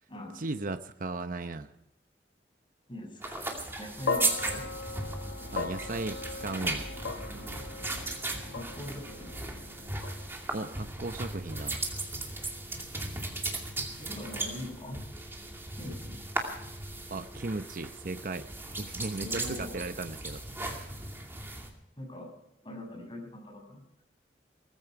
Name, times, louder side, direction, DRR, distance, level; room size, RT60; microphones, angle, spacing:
voice 1, 0.3-1.7 5.5-6.9 10.5-11.8 17.1-18.5 18.8-21.0, right 3 dB, 50° right, 9 dB, 0.7 m, -36 dB
voice 2, 2.9-4.6 8.5-9.3 14.0-15.0 15.8-16.2 19.2-19.8 22.0-22.3 22.6-23.8, left 1 dB, 30° left, 1 dB, 6.8 m, -42 dB
sound 1, 3.2-21.7, right 2 dB, 15° right, 2.5 m, -37 dB
sound 2, 4.1-12.4, left 4 dB, 75° left, 1.2 m, -39 dB
19.0 x 15.0 x 4.8 m, 0.82 s
head